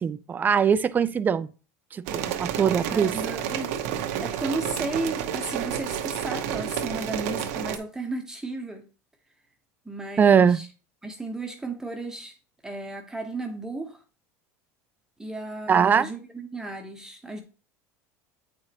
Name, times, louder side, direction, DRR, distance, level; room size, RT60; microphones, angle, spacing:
voice 1, 0.0-1.5 1.9-3.1 10.2-10.6 15.7-16.1, right 7 dB, 25° right, 0.4 m, -21 dB
sound 1, 2.1-7.8, right 9 dB, 75° right, 0.9 m, -30 dB
voice 2, 2.9-3.7 4.2-8.8 9.8-10.7 11.0-12.4 12.6-14.0 15.2-17.4, right 2 dB, 5° right, 0.9 m, -34 dB
8.6 x 4.8 x 2.9 m
supercardioid pair, 125°, 8 cm